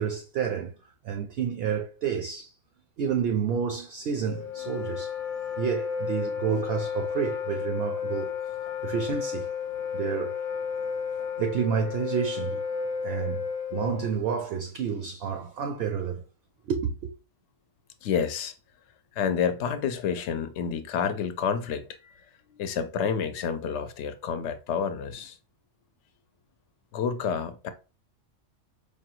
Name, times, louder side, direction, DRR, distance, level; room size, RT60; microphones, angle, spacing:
voice 1, 0.0-2.5 3.0-5.2 5.5-8.4 8.8-9.5 9.9-10.4 11.4-12.6 13.0-16.2 16.6-17.1, right 7 dB, 65° right, 0.6 m, -30 dB
Wind instrument woodwind instrument, 4.2-14.2, left 6 dB, 40° left, 0.6 m, -32 dB
voice 2, 10.8-11.4 13.0-13.1 18.0-18.5 19.1-22.1 22.5-25.4 26.9-27.7, left 7 dB, 70° left, 0.8 m, -30 dB
4.9 x 2.2 x 2.9 m
omnidirectional pair, 1.3 m